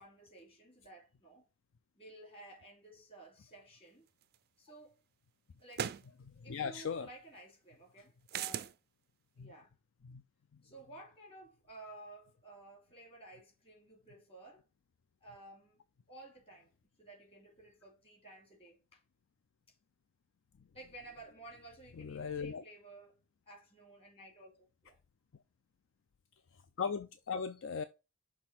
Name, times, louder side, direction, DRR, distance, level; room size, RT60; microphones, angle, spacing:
voice 1, 0.0-1.4 2.0-4.0 4.6-5.0 5.6-5.9 6.4-8.7 9.4-9.7 10.6-14.6 15.2-15.8 16.1-19.0 20.7-23.2 23.5-25.0, right 2 dB, 25° left, 2.6 m, -54 dB
sound 1, 4.3-4.4 5.7-6.1 8.3-8.7, right 9 dB, 45° right, 0.3 m, -37 dB
voice 2, 6.2-7.1 9.4-9.5 10.0-10.2 22.0-22.6 26.8-27.8, left 6 dB, 60° left, 0.4 m, -38 dB
6.2 x 3.2 x 5.8 m
head